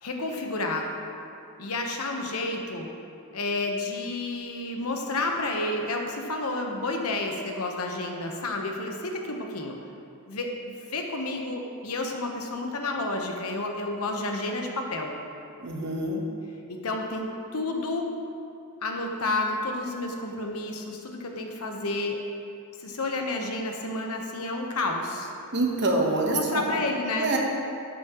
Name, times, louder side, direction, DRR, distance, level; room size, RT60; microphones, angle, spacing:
voice 1, 0.0-0.9 1.6-2.9 3.3-9.8 10.3-15.1 16.7-18.1 18.8-22.2 22.8-25.3 26.3-27.3, left 2 dB, 75° left, 2 dB, 1.1 m, -30 dB
voice 2, 15.6-16.2 25.5-26.8 27.1-27.4, right 2 dB, 50° right, 0 dB, 1.2 m, -26 dB
12.5 x 8.4 x 3.1 m, 2.6 s
head